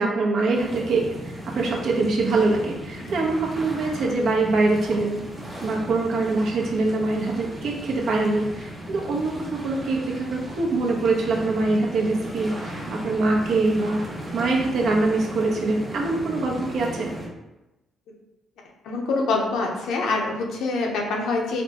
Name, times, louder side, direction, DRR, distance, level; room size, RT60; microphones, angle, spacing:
voice 1, 0.0-5.2 5.6-14.0 14.3-17.1, right 3 dB, 70° right, -1 dB, 0.8 m, -24 dB
sound 1, 0.5-17.3, equal, 30° right, 1.3 m, -36 dB
voice 2, 18.8-21.6, left 3 dB, 80° left, 0 dB, 0.7 m, -25 dB
4.2 x 2.2 x 2.8 m, 0.98 s
cardioid pair, 90°, 0 cm